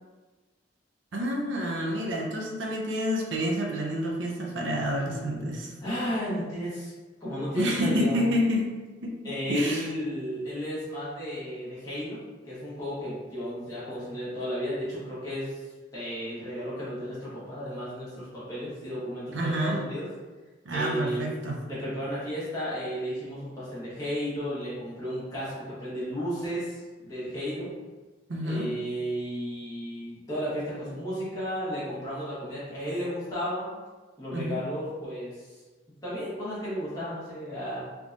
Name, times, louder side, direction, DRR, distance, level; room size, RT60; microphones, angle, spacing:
voice 1, 1.1-5.7 7.5-8.7 9.0-9.2 9.5-9.9 19.3-19.8 20.6-21.6 28.3-28.7 34.3-34.6, equal, 75° right, -1 dB, 0.6 m, -28 dB
voice 2, 5.8-6.9 7.2-8.2 9.2-12.2 12.4-15.6 15.9-20.1 20.7-21.3 21.7-27.7 28.4-33.7 34.2-35.6 36.0-37.8, equal, 20° left, -10 dB, 1.4 m, -33 dB
3.5 x 2.9 x 2.5 m, 1.3 s
head